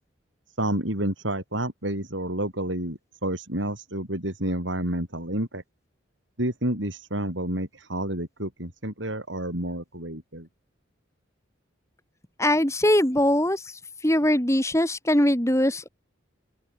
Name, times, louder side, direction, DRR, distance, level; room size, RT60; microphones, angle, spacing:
voice 1, 0.6-5.6 6.4-10.5, right 1 dB, 70° right, 8.0 m, -29 dB
voice 2, 12.4-13.7 14.0-15.9, left 1 dB, 15° left, 2.9 m, -21 dB
open air
head